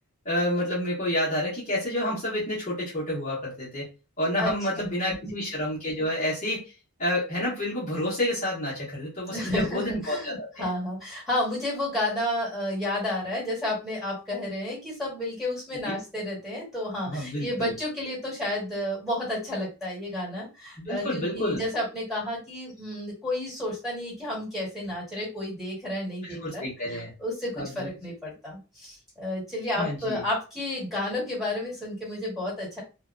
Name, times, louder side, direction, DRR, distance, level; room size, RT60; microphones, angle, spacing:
voice 1, 0.2-3.9 4.2-6.6 7.0-10.7 17.1-17.7 20.8-21.6 26.2-27.1 27.6-27.9 29.8-30.2, left 1 dB, 30° left, -8 dB, 0.9 m, -29 dB
voice 2, 4.4-4.9 5.2-5.3 9.3-26.6 26.9-32.8, left 1 dB, ahead, -7 dB, 1.4 m, -31 dB
2.7 x 2.2 x 2.4 m, 0.30 s
head